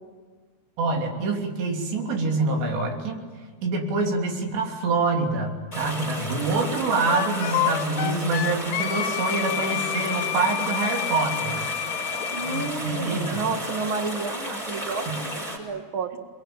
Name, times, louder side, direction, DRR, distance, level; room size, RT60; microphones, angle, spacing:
voice 1, 0.8-3.2 3.6-11.7 12.4-13.4 15.1-15.2, right 3 dB, 75° right, 2 dB, 5.4 m, -26 dB
sound 1, 5.7-15.6, equal, 20° left, 6.4 m, -33 dB
Wind instrument woodwind instrument, 7.1-12.7, left 13 dB, 75° left, 2.7 m, -29 dB
voice 2, 12.3-16.3, right 4 dB, 50° right, 6 dB, 1.6 m, -31 dB
29.0 x 22.0 x 9.0 m, 1.4 s
omnidirectional pair, 5.0 m